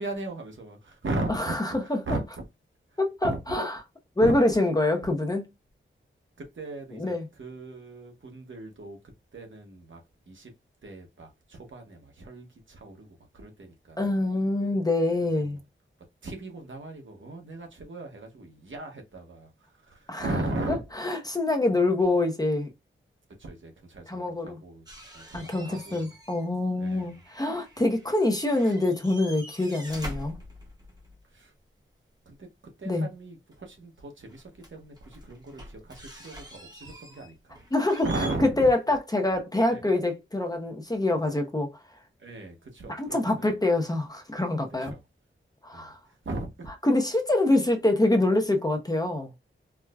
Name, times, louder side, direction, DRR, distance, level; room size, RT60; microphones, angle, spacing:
voice 1, 0.0-1.8 2.1-2.2 3.2-3.4 4.2-4.4 6.4-9.0 9.3-10.0 10.3-10.5 10.8-13.1 13.3-14.1 15.4-15.6 16.2-19.5 19.8-20.8 23.4-24.8 25.1-26.1 26.8-27.2 30.2-30.3 31.3-31.5 32.3-32.5 32.8-37.6 38.0-38.7 39.7-39.9 42.2-43.5 44.8-45.0 45.7-45.9 46.2-46.7, right 2 dB, 65° right, 1.0 m, -37 dB
voice 2, 1.3-2.0 3.0-3.7 4.2-5.5 6.9-7.3 14.0-15.6 20.1-20.3 21.0-22.7 24.1-24.6 25.3-30.4 32.8-33.1 37.7-38.1 38.6-41.7 42.9-44.9 45.6-46.0 46.8-49.3, left 2 dB, 20° left, 0.6 m, -25 dB
sound 1, 24.9-26.5 26.7-28.2 28.4-31.2 33.5-33.6 34.3-38.3, equal, 20° right, 0.9 m, -45 dB
4.6 x 2.1 x 2.3 m
wide cardioid pair, 100°, 21 cm